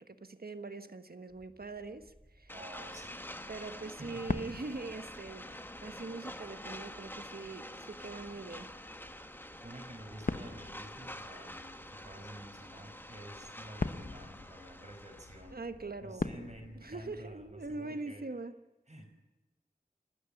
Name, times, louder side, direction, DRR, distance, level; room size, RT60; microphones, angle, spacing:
voice 1, 0.0-2.5 3.5-5.5 5.8-8.7 15.5-16.3 16.8-18.5, right 3 dB, 70° right, 1.4 m, -42 dB
sound 1, 1.3-17.8, equal, 20° right, 4.1 m, -63 dB
sound 2, 2.5-15.5, left 1 dB, 15° left, 1.5 m, -47 dB
voice 2, 2.5-3.2 4.0-4.2 9.6-15.6 16.0-18.2 18.9-19.1, right 1 dB, 45° right, 5.1 m, -50 dB
sound 3, 2.9-17.2, left 3 dB, 55° left, 0.9 m, -44 dB
28.5 x 13.0 x 9.9 m
wide cardioid pair, 45°, 16 cm